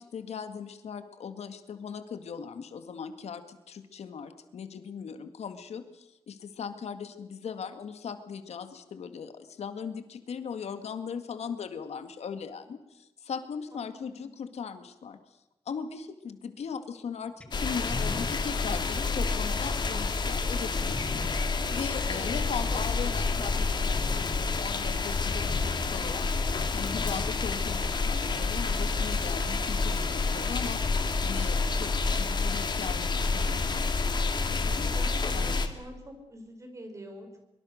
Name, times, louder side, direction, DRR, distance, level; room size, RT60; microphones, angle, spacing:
voice 1, 0.0-15.2 15.7-30.8 31.2-31.9 32.2-33.8 34.5-34.9 35.3-35.6, left 6 dB, 85° left, 9 dB, 2.1 m, -39 dB
voice 2, 13.7-14.3 22.0-23.6 34.8-37.4, equal, 30° right, 5 dB, 5.3 m, -46 dB
sound 1, 17.4-21.3 22.3-22.9 23.4-23.6 23.9-24.3 25.5-25.6 26.9-27.3 28.5-28.6, left 1 dB, 10° left, 2.0 m, -42 dB
sound 2, 17.5-35.7, left 4 dB, 45° left, 2.4 m, -29 dB
24.0 x 24.0 x 6.6 m, 0.98 s
wide cardioid pair, 145°, 11 cm